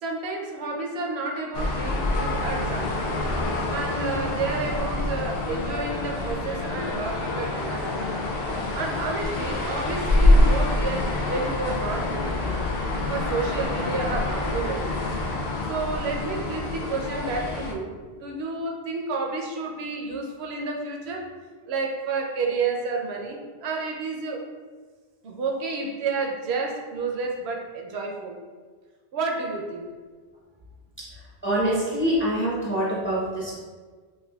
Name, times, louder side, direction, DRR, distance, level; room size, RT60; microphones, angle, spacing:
voice 1, 0.0-3.1 3.7-8.0 8.7-12.6 13.1-15.1 15.6-17.9 18.2-21.2 21.7-24.4 25.2-28.4 29.1-29.8, right 3 dB, 80° right, 1 dB, 0.8 m, -30 dB
sound 1, 1.5-17.7, left 2 dB, 70° left, 0.7 m, -26 dB
voice 2, 31.0-33.6, right 1 dB, 15° left, -6 dB, 0.5 m, -26 dB
4.8 x 2.2 x 2.3 m, 1.5 s
omnidirectional pair, 1.1 m